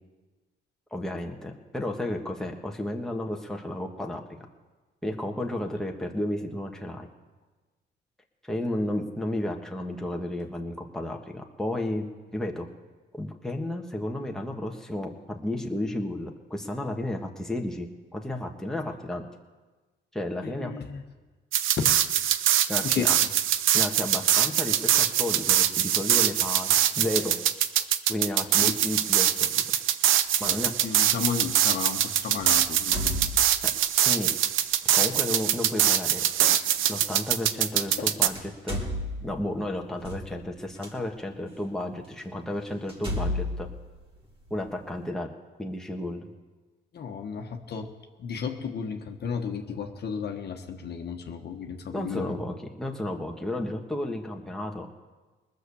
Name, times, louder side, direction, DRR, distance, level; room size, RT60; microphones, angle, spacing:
voice 1, 0.9-4.2 5.0-7.1 8.4-12.1 12.3-12.7 13.1-19.2 20.1-20.7 22.7-23.1 23.7-27.4 28.1-29.6 30.4-30.7 33.6-33.7 34.0-34.3 34.9-36.2 36.9-38.4 38.6-38.8 39.2-43.7 44.5-45.3 45.6-46.3 51.9-54.9, left 1 dB, 5° left, 1 dB, 1.5 m, -32 dB
voice 2, 20.4-21.0 21.8-21.9 22.8-23.3 28.5-28.8 30.3-33.4 38.0-38.2 46.9-47.9 48.2-52.4, left 6 dB, 55° left, 3 dB, 1.3 m, -34 dB
sound 1, 21.5-38.3, right 11 dB, 85° right, 0.6 m, -23 dB
sound 2, 30.3-30.5 32.4-33.9 34.8-35.0 36.9-37.0 37.9-38.0 38.3-40.9 41.6-41.7 42.2-42.3 42.9-44.7, left 1 dB, 25° right, 2.5 m, -34 dB
20.0 x 6.6 x 7.1 m, 1.3 s
cardioid pair, 90°, 20 cm